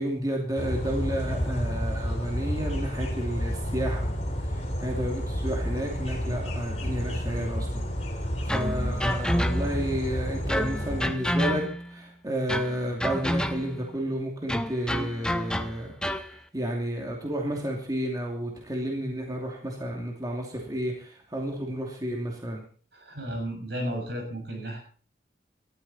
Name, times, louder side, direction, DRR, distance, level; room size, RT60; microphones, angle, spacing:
voice 1, 0.0-4.1 4.4-7.8 8.2-11.6 11.9-22.6, equal, 20° right, 0 dB, 2.7 m, -31 dB
sound 1, 0.6-11.0, equal, 35° left, 3.3 m, -30 dB
sound 2, 8.5-9.9 10.5-12.0 12.5-13.8 14.5-16.3, equal, 5° left, 0.8 m, -29 dB
voice 2, 22.9-24.8, equal, 65° right, 2 dB, 7.0 m, -33 dB
18.0 x 13.5 x 4.3 m, 0.42 s
head